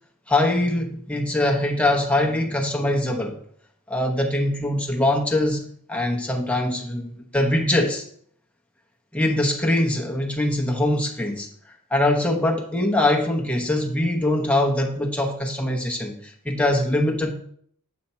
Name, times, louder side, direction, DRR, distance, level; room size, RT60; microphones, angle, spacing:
voice 1, 0.3-3.4 3.9-8.0 9.1-11.5 11.9-17.3, left 1 dB, 5° left, 1 dB, 0.9 m, -23 dB
7.1 x 4.2 x 4.3 m, 0.62 s
head